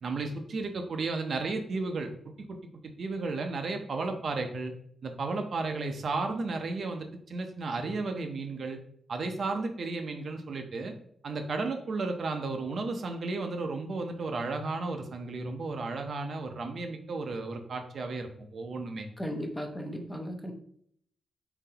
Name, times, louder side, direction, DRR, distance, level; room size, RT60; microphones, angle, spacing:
voice 1, 0.0-2.6 2.8-4.7 5.0-8.8 9.1-10.9 11.2-19.1, right 3 dB, 50° right, 5 dB, 0.5 m, -33 dB
voice 2, 19.2-20.5, equal, 5° left, 3 dB, 0.6 m, -36 dB
4.2 x 3.8 x 2.8 m, 0.67 s
wide cardioid pair, 145°, 0 cm